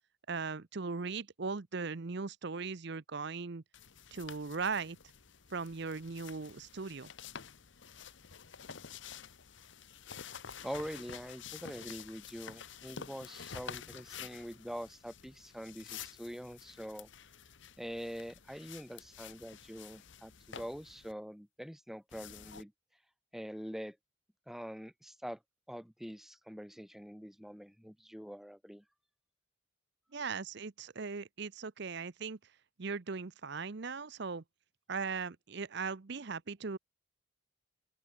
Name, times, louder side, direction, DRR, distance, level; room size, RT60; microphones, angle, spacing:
voice 1, 0.3-3.6 4.1-5.0 5.5-7.1 30.1-32.4 32.8-34.4 34.9-36.8, right 4 dB, 55° right, 0.7 m, -38 dB
sound 1, 3.7-21.1 22.1-22.6, left 7 dB, 60° left, 1.1 m, -50 dB
voice 2, 10.6-17.1 17.8-22.7 23.3-24.0 24.5-25.4 25.7-28.8, equal, ahead, 1.4 m, -44 dB
open air
head